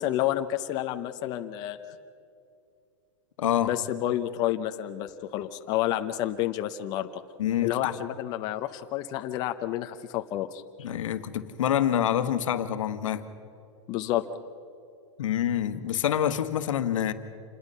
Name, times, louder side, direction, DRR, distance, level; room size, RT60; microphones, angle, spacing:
voice 1, 0.0-1.8 3.6-7.1 7.6-10.6 13.9-14.3, left 13 dB, 25° left, 7 dB, 0.6 m, -29 dB
voice 2, 3.4-3.7 7.4-7.9 10.8-13.2 15.2-17.1, left 10 dB, 90° left, 10 dB, 1.4 m, -26 dB
27.0 x 20.5 x 5.5 m, 2.5 s
supercardioid pair, 170°, 16 cm